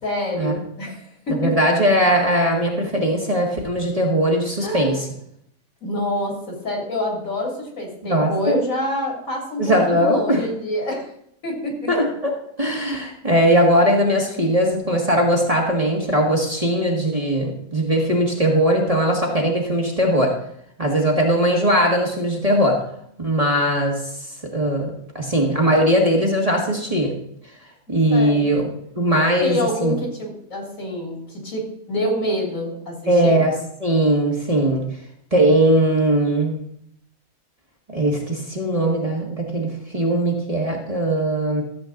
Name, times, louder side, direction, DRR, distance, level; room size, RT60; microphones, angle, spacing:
voice 1, 0.0-1.6 4.6-5.0 5.8-11.1 11.4-11.9 27.9-28.6 29.4-31.6 31.9-33.0 33.2-33.5, left 1 dB, 60° left, 0 dB, 3.3 m, -27 dB
voice 2, 1.3-5.1 8.0-8.6 9.6-10.4 11.9-12.3 12.6-20.3 20.8-22.8 23.2-24.1 24.5-24.9 25.1-27.1 27.9-28.6 28.9-29.9 33.1-33.5 33.8-34.8 35.3-36.6 37.9-41.6, right 1 dB, 25° right, -1 dB, 1.8 m, -19 dB
14.0 x 7.6 x 3.8 m, 0.71 s
omnidirectional pair, 1.5 m